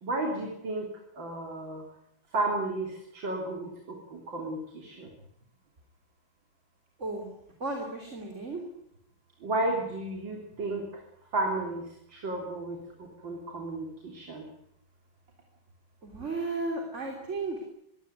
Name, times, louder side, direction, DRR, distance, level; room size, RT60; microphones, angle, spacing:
voice 1, 0.0-0.9 1.2-1.8 2.3-5.1 9.4-11.0 11.3-11.8 12.1-14.5, right 2 dB, 75° right, 1 dB, 4.2 m, -33 dB
voice 2, 7.6-8.6 16.0-17.6, right 3 dB, 35° right, 2 dB, 3.7 m, -34 dB
22.5 x 17.5 x 9.5 m, 0.78 s
omnidirectional pair, 2.1 m